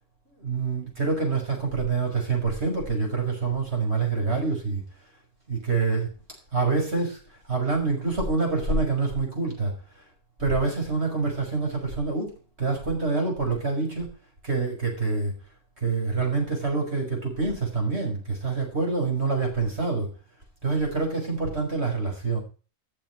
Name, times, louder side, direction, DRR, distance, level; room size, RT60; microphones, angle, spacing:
voice 1, 0.4-4.8 5.5-6.1 6.5-9.7 10.4-14.1 14.4-15.3 15.8-20.1 20.6-22.4, right 4 dB, 45° right, 1 dB, 6.3 m, -26 dB
14.5 x 7.3 x 6.2 m, 0.36 s
omnidirectional pair, 1.5 m